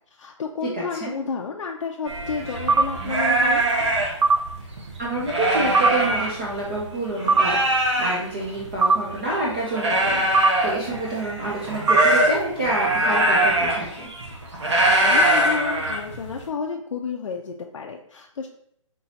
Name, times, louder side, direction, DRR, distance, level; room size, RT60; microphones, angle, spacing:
voice 1, 0.2-3.7 15.0-18.5, left 5 dB, 70° left, 1 dB, 0.5 m, -31 dB
voice 2, 0.7-1.1 5.0-14.1, right 2 dB, 15° right, -5 dB, 0.4 m, -28 dB
sound 1, 2.1-6.8 7.2-16.4, right 1 dB, 55° right, 1.2 m, -23 dB
sound 2, 2.7-2.9 4.2-4.4 5.7-5.9 7.3-7.5 8.8-9.0 10.3-10.5 11.9-12.1, right 4 dB, 75° right, 0.5 m, -17 dB
5.7 x 3.0 x 2.7 m, 0.72 s
hypercardioid pair, 170°, 17 cm